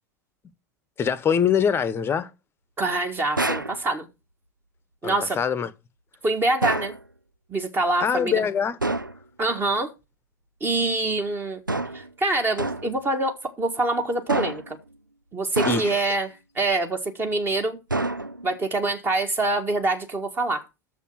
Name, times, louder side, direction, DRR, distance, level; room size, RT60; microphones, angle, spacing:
voice 1, 1.0-2.3 5.0-5.7 8.0-8.8 15.7-16.2, left 7 dB, 20° left, 1.0 m, -24 dB
voice 2, 2.8-4.1 5.0-5.4 6.2-6.9 7.5-8.4 9.4-9.9 10.6-11.6 11.9-14.8 15.3-17.8 18.4-20.7, right 2 dB, 20° right, 1.8 m, -25 dB
sound 1, 3.4-3.8 6.6-7.0 8.8-9.2 11.7-12.1 12.6-13.0 14.3-14.8 15.6-16.1 17.9-18.6, right 2 dB, 90° right, 0.4 m, -27 dB
7.0 x 6.9 x 7.3 m
figure-of-eight pair, 85°, 10 cm